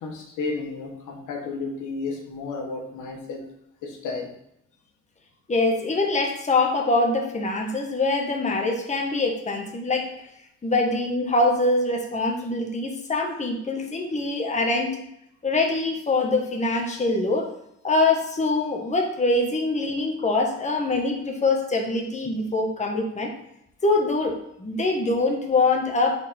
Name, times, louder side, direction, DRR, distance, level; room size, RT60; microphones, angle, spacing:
voice 1, 0.0-3.4 3.8-4.3, left 3 dB, 85° left, 1 dB, 1.3 m, -32 dB
voice 2, 5.5-10.1 10.6-15.0 15.4-17.5 17.8-23.3 23.8-26.1, left 2 dB, 25° left, 2 dB, 1.2 m, -24 dB
6.0 x 4.3 x 4.3 m, 0.77 s
cardioid pair, 90°, 30 cm